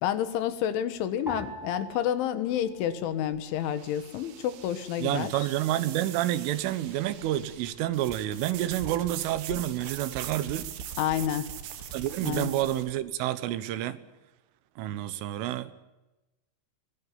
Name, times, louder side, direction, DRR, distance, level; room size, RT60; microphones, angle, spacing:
voice 1, 0.0-5.3 11.0-11.5 12.2-12.5, left 10 dB, 80° left, 3.8 m, -29 dB
sound 1, 1.3-3.8 4.0-4.9 5.6-6.0, right 2 dB, 5° left, 5.1 m, -45 dB
sound 2, 2.5-12.9, right 10 dB, 75° right, 3.8 m, -42 dB
voice 2, 5.0-10.7 11.9-14.0 14.8-15.7, right 13 dB, 90° right, 3.8 m, -29 dB
sound 3, 6.6-12.4, left 5 dB, 55° left, 2.4 m, -51 dB
22.5 x 18.5 x 9.7 m
omnidirectional pair, 5.5 m